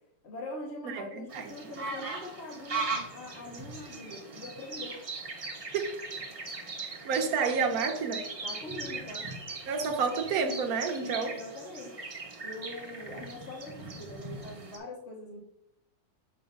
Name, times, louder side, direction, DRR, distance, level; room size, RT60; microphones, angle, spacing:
voice 1, 0.2-5.0 8.4-9.3 11.0-12.0 12.4-15.4, left 2 dB, 40° left, -1 dB, 1.3 m, -43 dB
voice 2, 0.8-1.5 5.7-5.9 6.9-8.3 9.7-11.3, right 5 dB, 60° right, 4 dB, 1.1 m, -30 dB
sound 1, 1.3-14.8, right 3 dB, 40° right, 0.4 m, -39 dB
6.9 x 3.2 x 5.2 m, 0.80 s
omnidirectional pair, 2.0 m